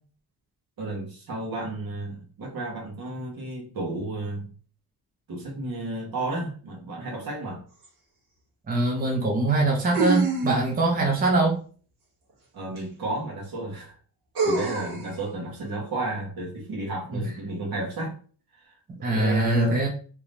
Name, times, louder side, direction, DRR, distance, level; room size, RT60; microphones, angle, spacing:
voice 1, 0.8-4.5 5.3-7.6 12.5-13.9 14.4-18.2 18.5-18.7 19.0-19.8, right 2 dB, 65° right, -1 dB, 1.3 m, -32 dB
sound 1, 7.8-7.9 9.9-10.9 12.8-12.9 14.4-15.1, right 4 dB, 85° right, 1.3 m, -26 dB
voice 2, 8.7-11.6 17.1-17.2 19.0-19.9, right 2 dB, 25° right, 0 dB, 0.6 m, -23 dB
3.3 x 3.0 x 2.6 m, 0.42 s
wide cardioid pair, 160°, 38 cm